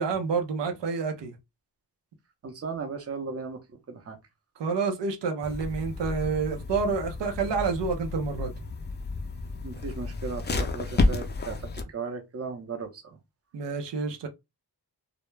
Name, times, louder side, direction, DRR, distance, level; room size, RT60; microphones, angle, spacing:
voice 1, 0.0-1.3 4.6-8.5 13.5-14.3, right 5 dB, 90° right, 0.6 m, -28 dB
voice 2, 2.4-3.6 3.9-4.2 9.6-11.6 11.9-13.2, right 4 dB, 35° right, 0.6 m, -36 dB
sound 1, 5.4-11.8, left 2 dB, 25° left, 0.4 m, -31 dB
2.2 x 2.0 x 3.1 m
wide cardioid pair, 90°, 41 cm